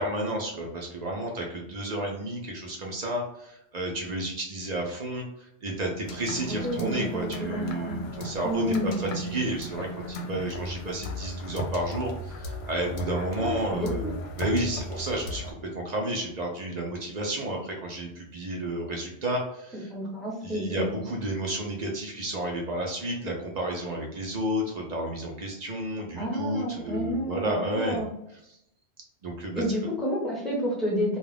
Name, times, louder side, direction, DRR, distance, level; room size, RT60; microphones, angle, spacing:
voice 1, 0.0-19.9 20.4-28.0 29.2-29.6, right 1 dB, 45° right, 0 dB, 0.6 m, -31 dB
sound 1, 6.0-15.5, equal, 70° left, 0.8 m, -36 dB
voice 2, 6.5-8.0 8.4-8.9 13.4-14.1 19.9-21.0 26.2-28.1 29.5-31.2, equal, ahead, -4 dB, 0.8 m, -30 dB
2.3 x 2.3 x 3.2 m, 0.78 s
omnidirectional pair, 1.2 m